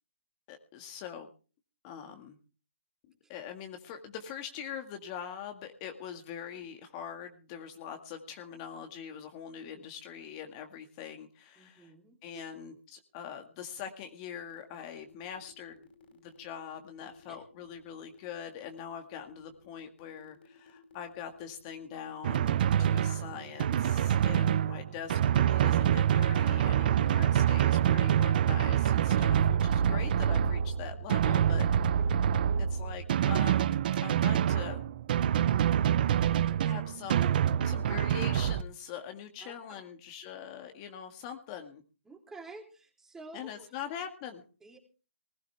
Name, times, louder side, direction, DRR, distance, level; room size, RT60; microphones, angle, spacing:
voice 1, 0.5-1.3 1.8-2.4 3.3-11.9 12.2-31.7 32.6-33.7 34.0-34.8 36.6-37.4 37.6-41.8 43.3-44.4, left 8 dB, 30° left, 5 dB, 1.9 m, -43 dB
voice 2, 11.6-12.2 17.3-17.4 27.9-28.0 32.0-32.1 36.2-36.7 37.4-37.6 39.4-39.8 42.0-43.7 44.6-44.8, right 3 dB, 5° right, 3 dB, 3.4 m, -51 dB
sound 1, 14.3-23.7, left 4 dB, 55° left, 5.2 m, -58 dB
Drum, 22.2-38.6, right 10 dB, 45° right, 0.8 m, -26 dB
20.0 x 15.5 x 3.4 m, 0.36 s
hypercardioid pair, 145°, 7 cm